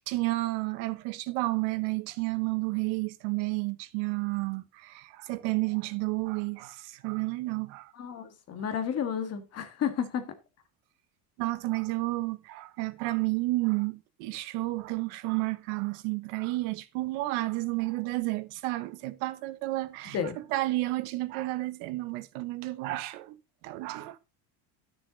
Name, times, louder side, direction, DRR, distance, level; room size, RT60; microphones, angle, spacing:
voice 1, 0.1-7.9 11.4-23.4 23.6-24.2, right 21 dB, 80° right, 1.1 m, -31 dB
voice 2, 7.9-10.3 20.0-20.4, left 8 dB, 30° left, 1.6 m, -32 dB
12.0 x 6.8 x 4.0 m
cardioid pair, 170°, 46 cm